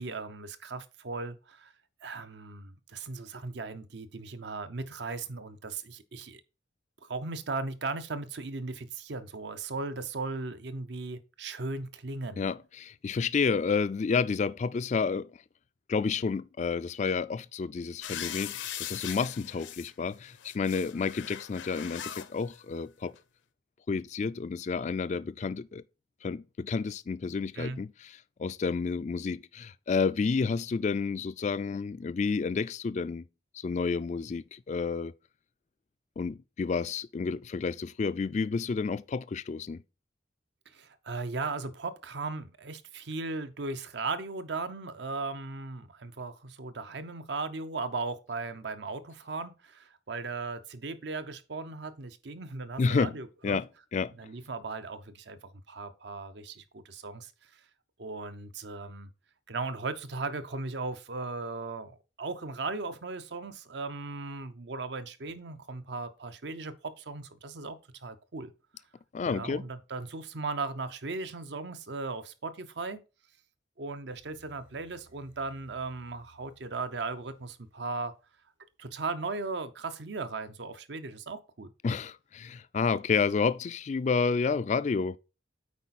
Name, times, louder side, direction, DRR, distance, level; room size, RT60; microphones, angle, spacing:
voice 1, 0.0-1.7 2.0-6.4 7.0-12.4 27.6-27.8 40.7-53.6 54.2-55.4 55.7-57.6 58.0-59.1 59.5-68.5 69.3-73.0 73.8-78.1 78.8-81.7, right 3 dB, 65° right, 0.7 m, -37 dB
voice 2, 12.4-15.3 15.9-23.1 23.9-25.8 26.2-28.1 28.4-33.3 33.5-35.1 36.2-39.8 52.8-53.2 53.4-54.1 69.1-69.6 81.8-85.2, left 5 dB, 40° left, 0.3 m, -30 dB
sound 1, 18.0-19.9 20.3-22.3 23.2-23.3, left 10 dB, 75° left, 0.6 m, -40 dB
sound 2, 74.1-78.2, right 1 dB, 85° right, 1.6 m, -62 dB
8.2 x 4.7 x 4.1 m
head